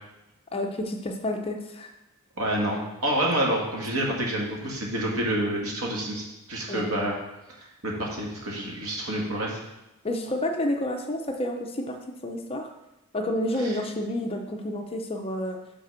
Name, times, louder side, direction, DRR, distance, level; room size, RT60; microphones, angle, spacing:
voice 1, 0.5-1.9 6.7-6.9 10.0-12.7 13.1-15.6, left 1 dB, 25° left, 3 dB, 0.6 m, -30 dB
voice 2, 2.4-7.1 7.6-9.6 13.6-13.7, right 1 dB, 65° right, -2 dB, 1.7 m, -28 dB
5.4 x 5.1 x 6.2 m, 0.96 s
head